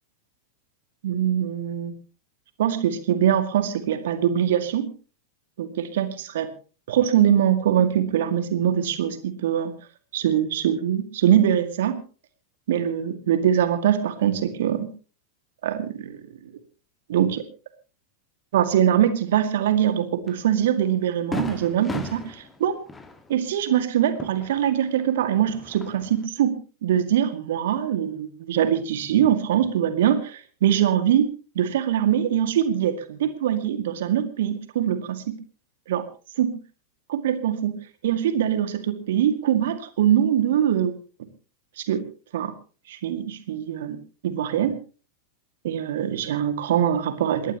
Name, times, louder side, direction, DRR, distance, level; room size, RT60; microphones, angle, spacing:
voice 1, 1.0-1.9 2.6-4.9 5.6-6.5 6.9-9.7 10.1-12.0 12.7-14.9 15.6-16.5 17.1-17.5 18.5-22.8 23.3-35.4 35.9-36.1 36.4-36.6 37.1-41.0 41.8-42.1 42.3-42.5 42.9-44.8 45.6-47.6, right 10 dB, 55° right, 9 dB, 2.0 m, -23 dB
Fireworks, 20.3-20.4 20.8-20.9 21.3-25.1 25.4-26.3, left 2 dB, 15° left, 1.6 m, -36 dB
27.5 x 11.5 x 2.9 m, 0.36 s
figure-of-eight pair, 90°, 0 cm